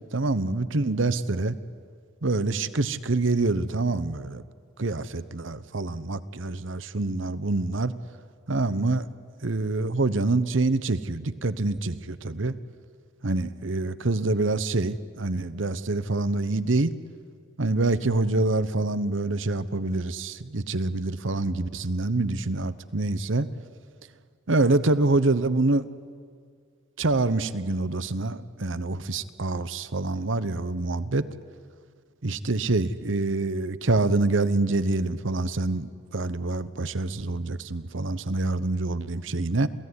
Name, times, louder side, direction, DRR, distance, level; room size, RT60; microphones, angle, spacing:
voice 1, 0.1-1.6 2.2-4.4 4.8-7.9 8.5-9.1 9.4-12.6 13.2-16.9 17.6-23.5 24.5-25.9 27.0-31.3 32.2-39.7, right 2 dB, 75° right, 14 dB, 1.0 m, -26 dB
28.0 x 17.0 x 9.7 m, 2.1 s
head